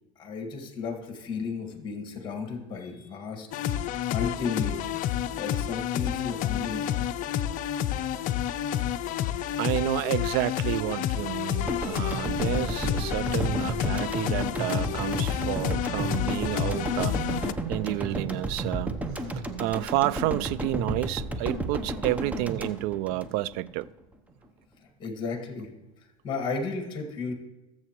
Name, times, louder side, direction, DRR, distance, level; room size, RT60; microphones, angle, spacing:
voice 1, 0.2-5.0 5.3-7.1 25.0-25.7 26.2-27.3, left 4 dB, 25° left, 2.0 m, -34 dB
sound 1, 3.5-17.5, left 11 dB, 45° left, 0.5 m, -29 dB
voice 2, 9.6-23.9, right 16 dB, 55° right, 0.4 m, -30 dB
sound 2, 11.7-23.9, right 2 dB, 10° right, 0.8 m, -33 dB
20.0 x 7.5 x 3.1 m
supercardioid pair, 110°, 18 cm